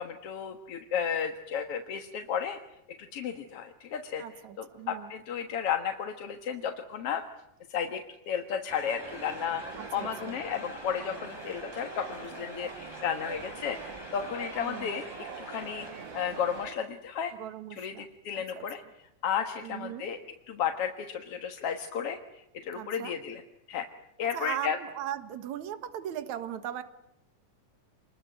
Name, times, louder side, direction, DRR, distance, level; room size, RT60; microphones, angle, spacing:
voice 1, 0.0-2.6 3.1-4.2 4.6-7.2 7.7-9.6 9.9-13.8 14.1-17.3 17.8-18.8 19.2-20.2 20.5-23.4 23.7-23.9 24.2-24.8, left 8 dB, 55° left, 5 dB, 2.1 m, -33 dB
voice 2, 4.2-5.1 9.8-10.4 14.6-14.9 17.4-18.1 18.4-18.6 19.6-20.1 22.7-23.2 24.3-26.8, right 11 dB, 65° right, 11 dB, 2.8 m, -38 dB
sound 1, 8.7-16.7, left 1 dB, 5° left, 3.8 m, -46 dB
sound 2, 9.0-16.7, right 7 dB, 50° right, 1.5 m, -44 dB
28.0 x 21.5 x 9.2 m, 0.85 s
omnidirectional pair, 3.7 m